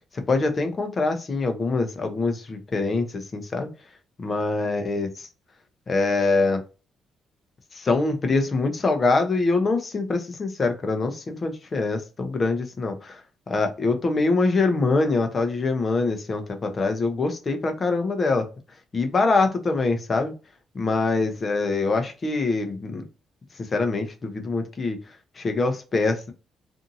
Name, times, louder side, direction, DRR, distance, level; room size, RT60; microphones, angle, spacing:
voice 1, 0.1-3.7 4.2-5.3 5.9-6.6 7.7-13.2 13.5-18.5 18.9-20.3 20.7-23.0 23.6-25.0 25.4-26.3, left 3 dB, 35° left, 6 dB, 0.7 m, -24 dB
2.6 x 2.6 x 2.7 m, 0.32 s
cardioid pair, 90°, 0 cm